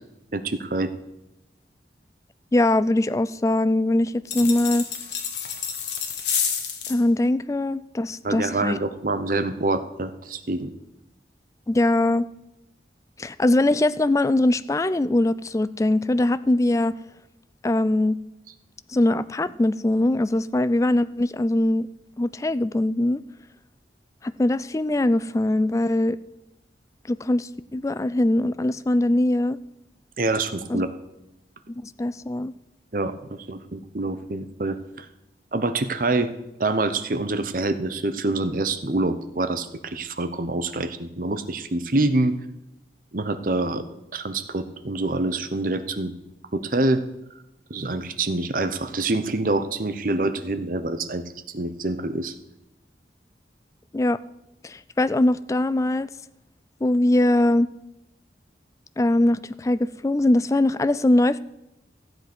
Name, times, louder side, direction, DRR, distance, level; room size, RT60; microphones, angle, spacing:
voice 1, 0.3-0.9 8.2-10.7 30.2-30.9 32.9-33.1 33.5-35.1 35.5-36.3 36.6-42.3 43.1-43.8 44.1-46.1 46.5-47.0 47.7-52.3, right 2 dB, 50° right, 10 dB, 0.8 m, -26 dB
voice 2, 2.5-4.8 6.9-8.8 11.7-12.3 13.2-17.0 17.6-18.2 18.9-21.9 22.2-23.2 24.2-26.2 27.1-29.6 30.7-30.9 31.7-32.5 53.9-54.2 54.6-56.1 56.8-57.7 59.0-61.4, left 1 dB, 20° left, 15 dB, 0.3 m, -22 dB
sound 1, 4.3-7.0, left 7 dB, 80° left, 1.5 m, -29 dB
14.0 x 7.9 x 6.1 m, 0.90 s
head